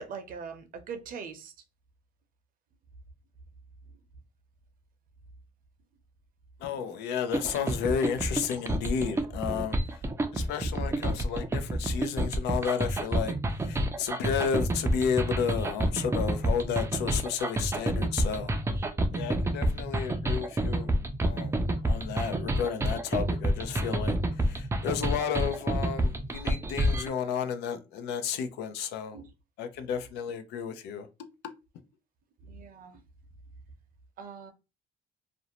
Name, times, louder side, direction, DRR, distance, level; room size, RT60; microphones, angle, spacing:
voice 1, 0.0-1.5 29.1-29.3 32.4-33.0 34.2-34.5, right 5 dB, 55° right, 0.6 m, -41 dB
voice 2, 6.6-9.8 10.3-13.3 13.6-18.5 19.1-29.2 29.6-31.1, left 7 dB, 80° left, 0.5 m, -32 dB
sound 1, 7.3-27.1, right 1 dB, 15° right, 0.4 m, -28 dB
2.5 x 2.0 x 2.9 m
cardioid pair, 110°, 17 cm